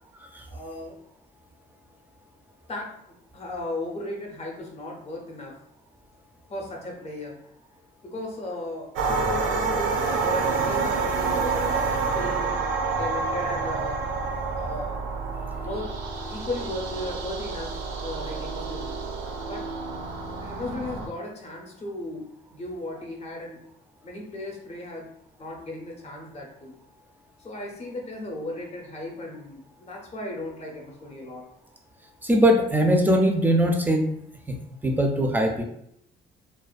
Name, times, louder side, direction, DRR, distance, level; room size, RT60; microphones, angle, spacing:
voice 1, 0.5-1.0 2.7-2.9 3.3-5.6 6.5-7.4 8.0-12.5 13.0-14.0 14.5-15.0 15.6-15.9 16.3-19.0 19.4-19.6 20.4-23.6 24.0-25.1 25.4-26.8 27.4-31.4, left 1 dB, 35° left, -1 dB, 0.6 m, -36 dB
sound 1, 9.0-21.1, right 4 dB, 85° right, 0.4 m, -28 dB
voice 2, 32.2-34.1 34.8-35.6, equal, 10° right, 3 dB, 0.4 m, -20 dB
2.4 x 2.2 x 2.4 m, 0.73 s
cardioid pair, 90°, 20 cm